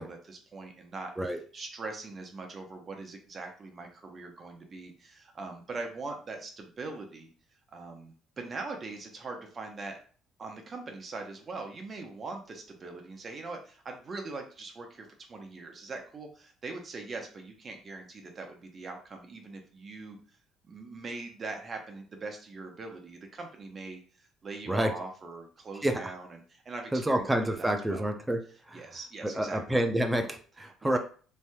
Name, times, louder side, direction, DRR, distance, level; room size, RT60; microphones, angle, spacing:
voice 1, 0.0-7.3 7.7-10.0 10.4-20.2 20.6-24.0 24.4-28.1 28.7-29.6 30.6-31.0, right 3 dB, 40° right, 3 dB, 0.8 m, -42 dB
voice 2, 26.9-28.4 28.7-28.8 29.2-31.0, right 1 dB, 10° right, 6 dB, 0.5 m, -28 dB
3.3 x 2.7 x 2.3 m, 0.41 s
supercardioid pair, 85°, 0 cm